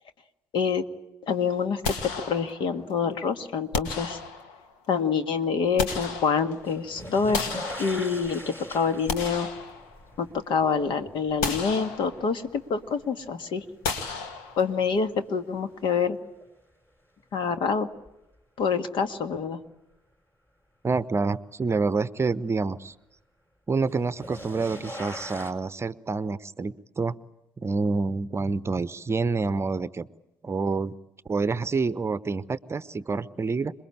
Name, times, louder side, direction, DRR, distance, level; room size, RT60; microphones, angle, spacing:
voice 1, 1.3-4.2 4.9-9.5 10.2-13.6 14.6-16.2 17.3-17.9 18.6-19.6, left 5 dB, 55° left, 9 dB, 1.7 m, -26 dB
sound 1, 1.8-2.9 3.7-4.8 5.4-6.8 7.3-8.4 8.9-10.3 10.7-10.9 11.4-12.5 13.8-15.0, left 4 dB, 70° left, 2.0 m, -33 dB
sound 2, 6.6-13.7 14.1-14.8 16.4-16.5 18.1-18.2 23.9-25.5, equal, 20° left, 5.2 m, -41 dB
voice 2, 20.8-22.9 23.7-27.2 27.6-30.1 30.4-30.9 31.3-33.7, right 4 dB, 25° right, 16 dB, 0.9 m, -27 dB
27.0 x 22.0 x 8.8 m, 0.92 s
figure-of-eight pair, 50°, 10 cm